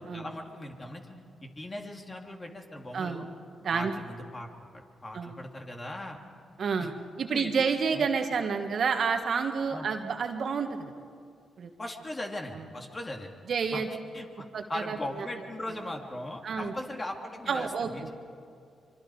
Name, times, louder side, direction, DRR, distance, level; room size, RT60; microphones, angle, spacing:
voice 1, 0.0-3.3 3.6-6.2 6.8-6.9 7.3-7.6 7.9-8.1 9.7-9.9 11.8-13.3 13.7-13.8 14.1-18.1, left 1 dB, 30° left, 2 dB, 3.1 m, -39 dB
voice 2, 2.9-3.3 3.6-3.9 5.1-5.4 6.6-6.9 7.2-10.9 11.6-11.7 13.5-13.9 14.5-15.0 15.6-15.7 16.4-16.7 17.5-18.1, right 5 dB, 65° right, 5 dB, 1.8 m, -29 dB
25.0 x 24.0 x 5.1 m, 2.3 s
supercardioid pair, 50°, 0 cm